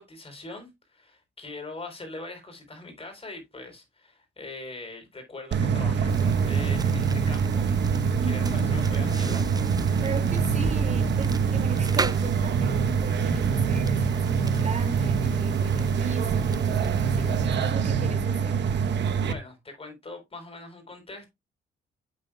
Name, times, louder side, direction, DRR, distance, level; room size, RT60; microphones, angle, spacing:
voice 1, 0.0-7.7 8.2-9.6 19.2-21.3, left 2 dB, 30° left, 3.9 m, -42 dB
sound 1, 5.5-19.3, right 6 dB, 60° right, 1.0 m, -25 dB
sound 2, 6.1-17.5, right 4 dB, 20° right, 0.5 m, -32 dB
voice 2, 8.2-8.7 10.0-18.7, right 4 dB, 35° right, 2.4 m, -37 dB
8.8 x 7.5 x 2.3 m
cardioid pair, 90°, 20 cm